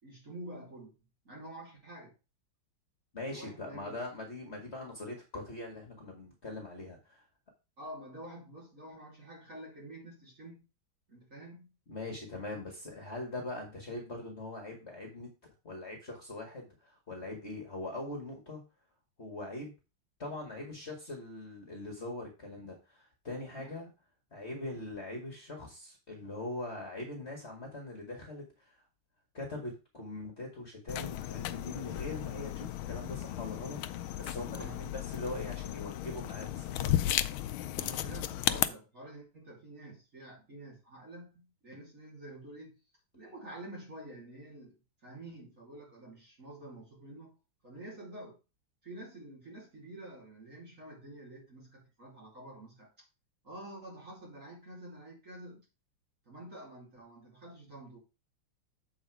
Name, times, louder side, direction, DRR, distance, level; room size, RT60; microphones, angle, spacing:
voice 1, 0.0-0.9 1.2-2.1 3.3-4.1 7.8-10.6 11.1-11.8 13.9-14.0 23.6-23.7 34.5-34.9 37.8-42.7 43.1-47.4 47.6-48.4 48.8-52.9 53.4-55.7 56.2-58.0, right 1 dB, 40° right, 3.3 m, -48 dB
voice 2, 3.1-7.2 11.9-18.6 19.2-19.8 20.2-23.9 24.3-28.8 29.3-36.9, left 2 dB, 30° left, 2.0 m, -42 dB
sound 1, 30.9-38.7, left 13 dB, 85° left, 1.4 m, -34 dB
7.9 x 5.1 x 4.7 m
omnidirectional pair, 2.3 m